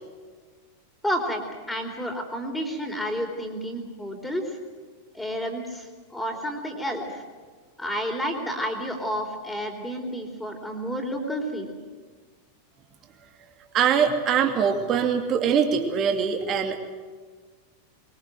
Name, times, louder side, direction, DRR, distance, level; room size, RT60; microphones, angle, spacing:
voice 1, 1.0-1.4 1.7-4.6 5.1-7.2 7.8-11.7, equal, 5° left, 2 dB, 4.1 m, -30 dB
voice 2, 13.7-16.8, right 7 dB, 30° right, 4 dB, 2.7 m, -23 dB
23.5 x 23.5 x 7.8 m, 1.5 s
figure-of-eight pair, 90°, 0 cm